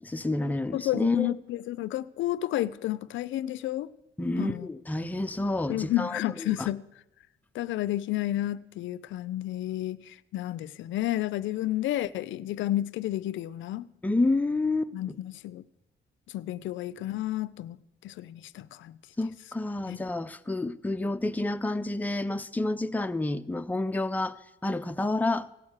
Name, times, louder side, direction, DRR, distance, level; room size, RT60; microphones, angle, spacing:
voice 1, 0.0-1.3 4.2-6.2 6.6-6.7 14.0-14.9 19.2-24.4 24.6-25.5, left 2 dB, 10° left, 0.5 m, -29 dB
voice 2, 0.7-3.9 4.4-4.7 5.7-6.9 7.5-13.9 14.9-15.6 16.3-17.8 18.0-19.0 19.9-20.0, left 14 dB, 75° left, 0.4 m, -31 dB
16.5 x 6.3 x 7.3 m
cardioid pair, 90°, 20 cm